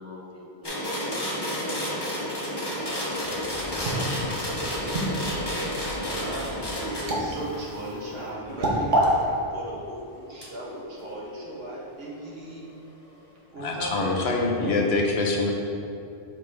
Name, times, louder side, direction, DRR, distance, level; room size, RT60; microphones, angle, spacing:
voice 1, 0.0-2.0, equal, 20° right, 0.5 m, -44 dB
sound 1, 0.6-9.2 10.4-10.5, equal, 25° left, 1.1 m, -31 dB
sound 2, 2.8-9.1, right 1 dB, 50° right, 1.0 m, -30 dB
voice 2, 5.9-12.7 13.5-14.8, right 1 dB, 65° right, 1.4 m, -37 dB
voice 3, 13.6-15.5, left 3 dB, 75° left, 1.0 m, -24 dB
6.5 x 4.9 x 3.4 m
omnidirectional pair, 1.1 m